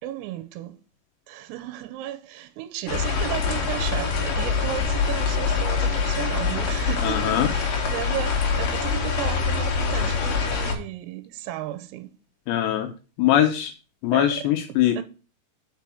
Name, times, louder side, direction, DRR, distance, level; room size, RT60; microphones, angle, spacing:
voice 1, 0.0-0.8 1.3-12.2 14.1-14.5 15.0-15.1, right 13 dB, 90° right, 3.4 m, -34 dB
sound 1, 2.9-10.7, left 5 dB, 60° left, 2.5 m, -24 dB
voice 2, 7.0-7.5 12.5-12.9 13.2-13.7 14.0-15.0, left 11 dB, 85° left, 2.5 m, -21 dB
6.4 x 6.0 x 6.9 m
omnidirectional pair, 6.0 m